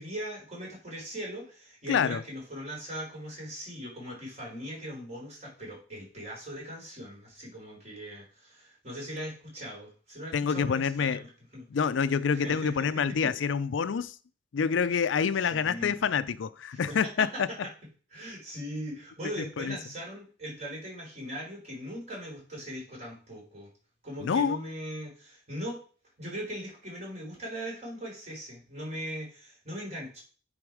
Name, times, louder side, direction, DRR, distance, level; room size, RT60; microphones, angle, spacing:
voice 1, 0.0-11.3 11.5-11.6 12.3-13.3 15.4-16.0 16.7-17.4 18.1-23.7 24.0-25.8 26.2-30.2, equal, 35° right, 4.5 m, -40 dB
voice 2, 1.9-2.2 10.3-11.2 11.7-14.2 14.5-17.5 19.4-19.8 24.2-24.6, left 6 dB, 90° left, 0.4 m, -27 dB
9.7 x 4.0 x 4.8 m
head